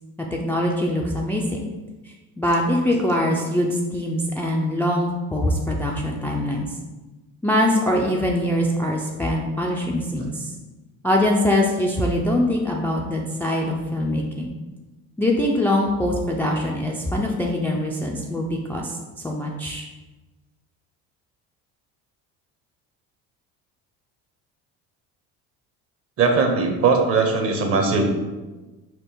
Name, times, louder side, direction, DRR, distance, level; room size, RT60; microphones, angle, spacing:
voice 1, 0.3-1.6 2.0-6.7 7.4-10.5 11.0-14.5 15.2-19.0 19.2-19.9, left 1 dB, 5° left, -1 dB, 0.3 m, -23 dB
voice 2, 26.2-28.2, right 4 dB, 40° right, 3 dB, 0.9 m, -20 dB
4.5 x 2.5 x 4.4 m, 1.2 s
cardioid pair, 110°, 34 cm